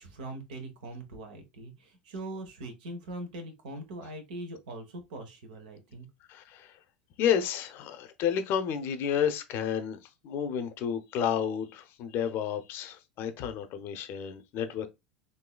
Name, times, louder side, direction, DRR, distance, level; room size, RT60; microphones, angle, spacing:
voice 1, 0.0-6.1, right 1 dB, 75° right, 0.9 m, -41 dB
voice 2, 6.3-6.7 7.2-10.0 10.2-14.9, left 8 dB, 55° left, 0.6 m, -31 dB
3.9 x 2.7 x 2.2 m
hypercardioid pair, 80°, 5 cm